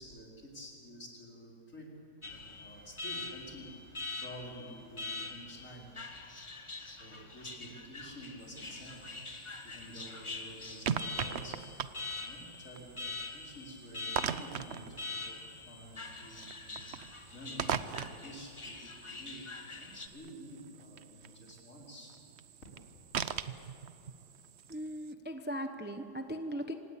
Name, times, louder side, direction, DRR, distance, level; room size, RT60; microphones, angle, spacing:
voice 1, 0.0-1.9 2.2-3.7 4.2-5.9 6.9-9.0 9.6-11.6 12.2-16.9 17.3-22.1, equal, 45° left, -2 dB, 4.7 m, -50 dB
Alarm, 2.2-20.1, left 3 dB, 20° left, 1.1 m, -44 dB
sound 1, 8.4-25.1, right 8 dB, 60° right, 0.7 m, -42 dB
voice 2, 24.7-26.7, equal, 10° right, 7 dB, 0.6 m, -38 dB
26.5 x 18.5 x 8.4 m, 2.7 s
omnidirectional pair, 1.9 m